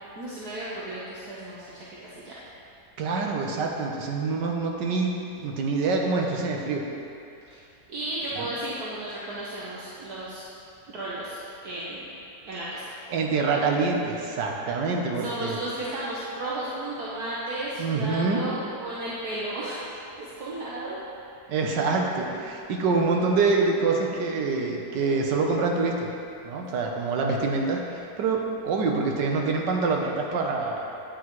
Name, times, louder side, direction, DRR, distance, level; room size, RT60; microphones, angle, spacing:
voice 1, 0.1-2.4 7.5-7.6 7.9-10.4 10.9-12.1 12.4-12.8 15.2-19.8 20.2-21.0 21.3-21.5, right 1 dB, 65° right, -8 dB, 1.5 m, -34 dB
voice 2, 3.0-6.8 8.4-8.5 13.1-15.6 17.8-18.5 21.5-26.1 26.4-30.9, right 4 dB, 80° right, 1 dB, 1.5 m, -26 dB
9.4 x 8.6 x 3.1 m, 2.7 s
omnidirectional pair, 1.9 m